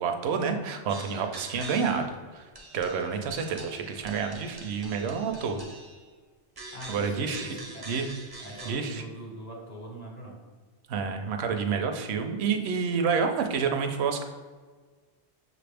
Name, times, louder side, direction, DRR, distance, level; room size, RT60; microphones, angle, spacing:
voice 1, 0.0-2.0 2.3-2.5 2.7-5.6 6.9-7.6 7.9-8.1 8.7-9.0 10.9-14.2, right 5 dB, 70° right, 5 dB, 0.8 m, -29 dB
sound 1, 0.9-2.1 2.5-6.1 6.6-8.7, right 2 dB, 30° right, 0.4 m, -45 dB
voice 2, 6.7-7.9 8.4-10.4, right 1 dB, 40° left, -1 dB, 0.9 m, -43 dB
6.2 x 2.5 x 3.3 m, 1.4 s
omnidirectional pair, 1.2 m